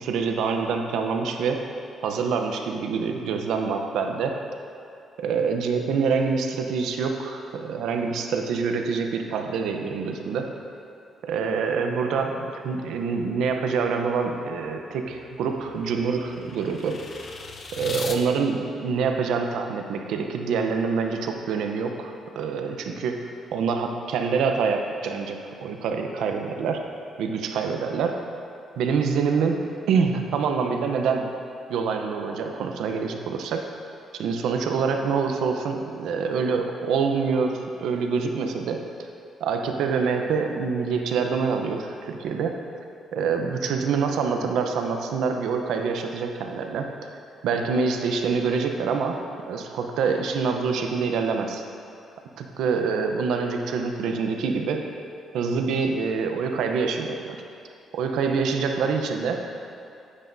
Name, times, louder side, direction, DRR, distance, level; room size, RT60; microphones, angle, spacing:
voice 1, 0.0-1.6 2.0-4.4 5.2-10.5 11.2-17.0 17.7-23.2 23.5-26.8 27.2-28.2 28.8-29.6 29.9-31.3 31.7-33.7 34.1-38.8 39.4-42.6 43.1-46.9 47.4-49.2 49.5-51.6 52.4-54.8 55.3-57.4 57.9-59.4, right 5 dB, 80° right, 4 dB, 0.8 m, -26 dB
sound 1, 14.6-18.2, left 4 dB, 45° left, 0.8 m, -39 dB
10.5 x 9.8 x 2.7 m, 2.6 s
cardioid pair, 90°, 0 cm